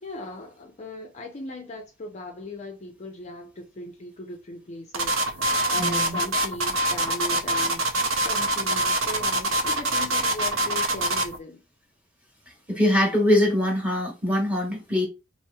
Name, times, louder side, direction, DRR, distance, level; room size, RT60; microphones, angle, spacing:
voice 1, 0.0-5.4 5.7-11.6, left 2 dB, 35° left, 0.5 m, -38 dB
sound 1, 4.9-11.4, right 1 dB, 70° right, 0.6 m, -24 dB
voice 2, 5.8-6.2 12.7-15.1, left 1 dB, 5° right, 1.1 m, -23 dB
3.0 x 2.9 x 2.3 m
head